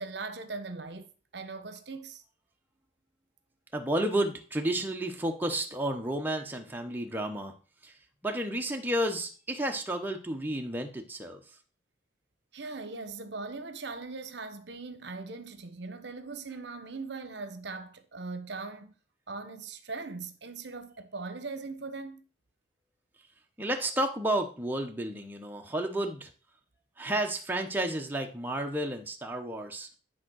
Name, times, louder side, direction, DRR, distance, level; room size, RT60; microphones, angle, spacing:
voice 1, 0.0-2.2 12.5-18.9 19.3-22.2, right 3 dB, 65° right, 0.9 m, -40 dB
voice 2, 3.7-7.5 7.8-7.9 8.2-11.4 23.6-26.3 27.0-29.9, right 1 dB, 10° right, 0.9 m, -31 dB
10.5 x 3.7 x 6.2 m
head